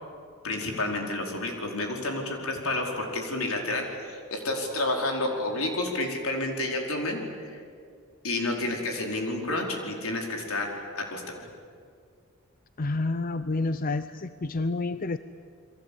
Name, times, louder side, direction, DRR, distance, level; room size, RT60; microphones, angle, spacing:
voice 1, 0.4-7.6 8.2-11.5, left 2 dB, 75° left, 2 dB, 4.8 m, -30 dB
voice 2, 12.8-15.2, left 3 dB, 40° left, 12 dB, 0.6 m, -29 dB
29.0 x 23.0 x 8.7 m, 2.2 s
head